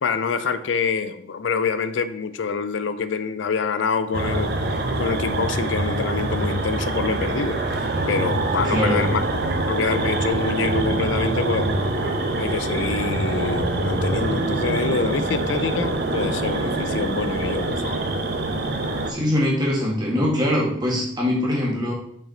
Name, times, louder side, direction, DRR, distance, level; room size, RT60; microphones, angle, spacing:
voice 1, 0.0-4.5 5.0-7.6 8.1-9.2 9.7-11.7 12.4-18.0, left 5 dB, 80° left, 11 dB, 0.5 m, -26 dB
sound 1, 4.1-19.1, right 2 dB, 60° right, 0.8 m, -24 dB
voice 2, 8.6-9.1 19.1-21.9, left 1 dB, 25° right, -3 dB, 1.9 m, -22 dB
6.0 x 4.8 x 4.4 m, 0.68 s
head